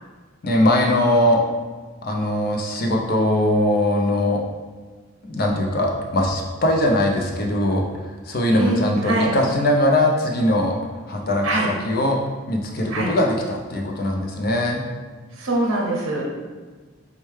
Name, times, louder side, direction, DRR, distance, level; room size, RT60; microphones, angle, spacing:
voice 1, 0.4-1.4 2.0-4.4 5.2-7.8 8.3-11.4 11.8-12.2 12.5-14.8, left 1 dB, 45° left, 1 dB, 0.5 m, -21 dB
voice 2, 8.5-9.3 11.4-11.7 12.9-13.1 15.3-16.2, right 2 dB, 75° right, -3 dB, 0.7 m, -23 dB
4.4 x 2.2 x 3.2 m, 1.4 s
head